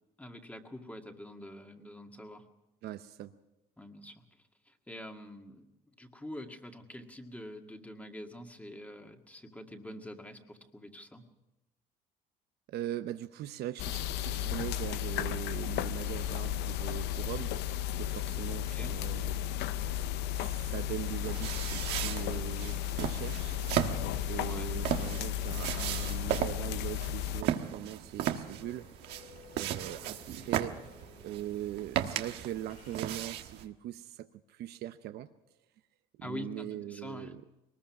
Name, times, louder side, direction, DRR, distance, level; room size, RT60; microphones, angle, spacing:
voice 1, 0.2-2.5 3.8-4.2 4.7-5.6 6.0-11.2 18.7-19.0 24.5-24.7 36.2-37.3, left 1 dB, 10° left, 4 dB, 1.9 m, -45 dB
voice 2, 2.8-3.3 12.7-17.5 18.0-19.6 20.3-23.6 24.3-28.9 29.6-30.8 31.2-35.3 36.2-37.4, right 12 dB, 75° right, 10 dB, 0.8 m, -41 dB
sound 1, 13.8-27.4, left 11 dB, 85° left, 0.7 m, -34 dB
sound 2, 18.2-26.5 26.9-33.7, left 4 dB, 50° left, 4.0 m, -58 dB
sound 3, 21.2-33.6, right 11 dB, 90° right, 1.3 m, -36 dB
22.0 x 20.0 x 5.9 m, 0.93 s
cardioid pair, 110°, 17 cm